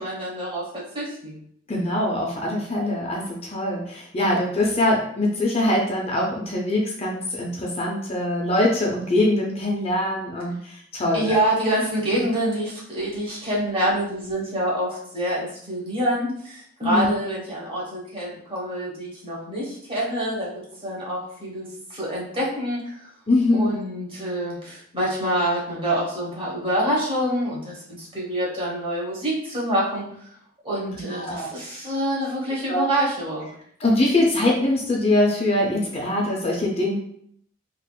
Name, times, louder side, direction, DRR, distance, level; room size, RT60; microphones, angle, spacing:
voice 1, 0.0-1.4 11.1-20.5 20.8-23.1 23.5-30.0 30.6-33.5, right 1 dB, 25° right, -5 dB, 1.1 m, -26 dB
voice 2, 1.7-11.4 12.1-12.2 16.8-17.1 23.3-23.7 30.9-31.5 32.7-32.9 33.8-37.0, left 1 dB, 30° left, -1 dB, 0.5 m, -23 dB
3.5 x 2.4 x 2.3 m, 0.67 s
head